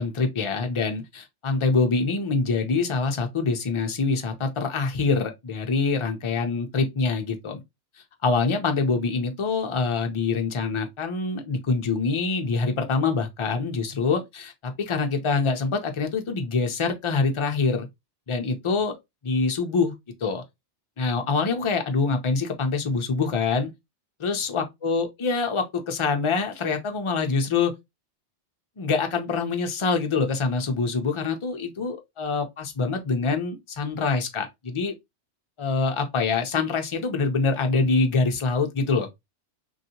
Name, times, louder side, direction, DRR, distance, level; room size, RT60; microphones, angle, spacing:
voice 1, 0.0-7.6 8.2-17.9 18.3-19.0 19.2-19.9 20.2-20.4 21.0-23.7 24.2-27.7 28.8-34.9 35.6-39.1, left 4 dB, 40° left, 0.4 m, -25 dB
3.1 x 2.7 x 2.7 m
omnidirectional pair, 1.2 m